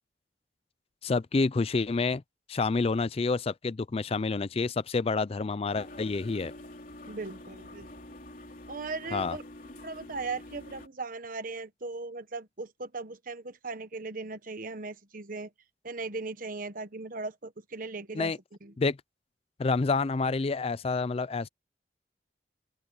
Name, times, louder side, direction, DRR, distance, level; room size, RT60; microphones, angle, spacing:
voice 1, 1.0-2.2 2.5-6.5 9.1-9.4 18.1-18.4 18.8-19.0 19.6-21.5, left 4 dB, 35° left, 0.4 m, -28 dB
sound 1, 5.7-10.9, left 1 dB, 50° left, 3.4 m, -46 dB
voice 2, 7.1-7.9 8.7-9.4 9.8-15.5 15.8-18.3 18.6-18.7, right 3 dB, 50° right, 1.2 m, -38 dB
open air
head